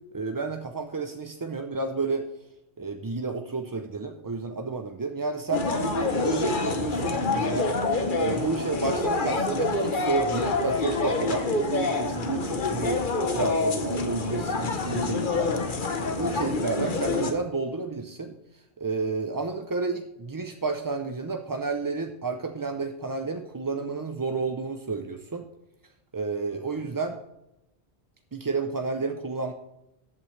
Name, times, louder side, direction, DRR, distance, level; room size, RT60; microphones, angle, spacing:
voice 1, 0.1-2.3 2.8-7.7 8.2-15.5 16.2-18.3 18.8-25.4 26.1-27.2 28.3-29.5, right 4 dB, 30° right, 5 dB, 0.4 m, -31 dB
sound 1, 5.5-17.3, left 3 dB, 50° left, 1.1 m, -27 dB
14.0 x 8.4 x 3.2 m, 0.87 s
omnidirectional pair, 1.1 m